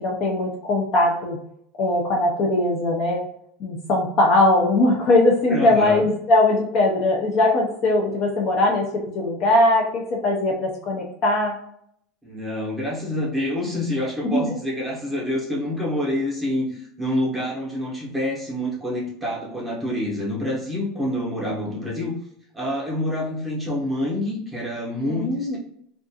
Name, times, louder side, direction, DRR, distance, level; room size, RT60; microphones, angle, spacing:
voice 1, 0.0-1.4 1.8-3.2 3.6-11.5 14.2-14.5 25.1-25.6, left 2 dB, 35° left, -1 dB, 0.4 m, -20 dB
voice 2, 5.5-6.1 12.2-22.1 22.5-25.6, left 1 dB, 5° right, -6 dB, 0.8 m, -27 dB
2.4 x 2.3 x 2.6 m, 0.70 s
supercardioid pair, 175°, 0 cm